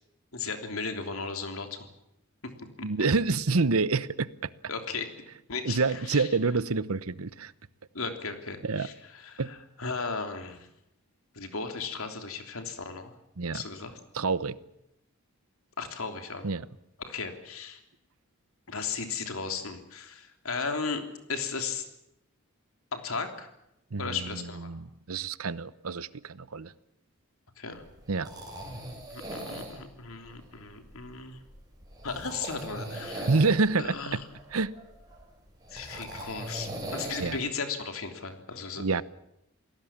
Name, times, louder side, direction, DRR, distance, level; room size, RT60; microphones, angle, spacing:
voice 1, 0.3-1.9 2.4-2.5 2.8-2.9 4.7-5.1 5.5-6.3 7.9-10.7 11.3-13.1 13.5-14.0 15.8-16.5 17.1-17.8 18.7-21.9 22.9-23.5 24.0-24.7 27.6-27.8 29.1-31.4 32.0-33.3 33.8-34.2 35.7-38.9, left 4 dB, 70° left, 3.3 m, -36 dB
voice 2, 2.8-4.5 5.6-7.5 8.6-8.9 9.4-9.5 13.4-13.6 14.1-14.6 16.4-16.7 23.9-26.7 28.1-28.3 33.3-34.2 34.5-34.7 37.2-37.4 38.8-39.0, right 4 dB, 80° right, 0.9 m, -27 dB
sound 1, 27.7-37.4, right 1 dB, 20° right, 7.3 m, -41 dB
28.0 x 18.5 x 7.4 m
head